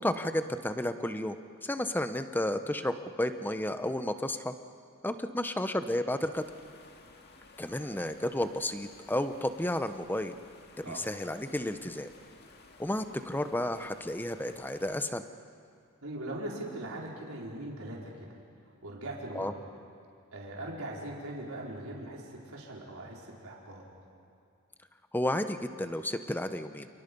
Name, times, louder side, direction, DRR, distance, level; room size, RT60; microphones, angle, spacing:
voice 1, 0.0-4.5 5.0-6.4 7.6-10.4 10.9-12.1 12.8-15.2 19.3-19.5 25.1-26.9, left 1 dB, 10° left, 9 dB, 0.8 m, -32 dB
sound 1, 6.3-15.0, left 3 dB, 45° left, 2.1 m, -56 dB
voice 2, 16.0-18.3 18.8-19.5 20.3-23.9, right 1 dB, 70° right, -3 dB, 4.6 m, -40 dB
29.5 x 29.0 x 5.4 m, 2.3 s
head